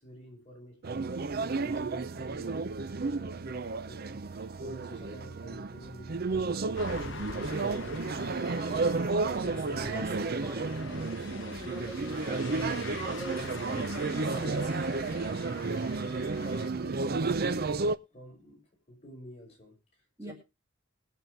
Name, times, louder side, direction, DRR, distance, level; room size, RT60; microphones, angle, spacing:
voice 1, 0.0-8.6 9.5-9.9 16.0-17.9 18.1-18.6 18.9-20.3, equal, 30° left, 5.8 m, -51 dB
sound 1, 0.8-18.0, right 3 dB, 50° right, 0.6 m, -32 dB
sound 2, 6.8-16.7, left 4 dB, 65° left, 0.8 m, -44 dB
voice 2, 9.3-15.0 20.2-20.3, right 1 dB, 15° right, 2.3 m, -42 dB
21.5 x 7.5 x 3.2 m
head